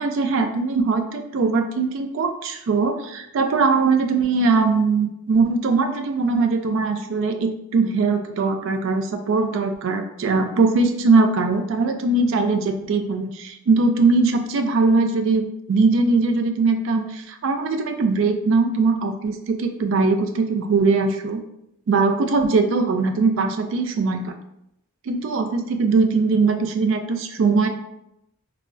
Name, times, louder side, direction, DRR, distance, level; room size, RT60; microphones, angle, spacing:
voice 1, 0.0-21.4 21.9-24.3 25.1-27.7, right 4 dB, 60° right, 6 dB, 0.3 m, -21 dB
3.6 x 2.0 x 2.4 m, 0.80 s
head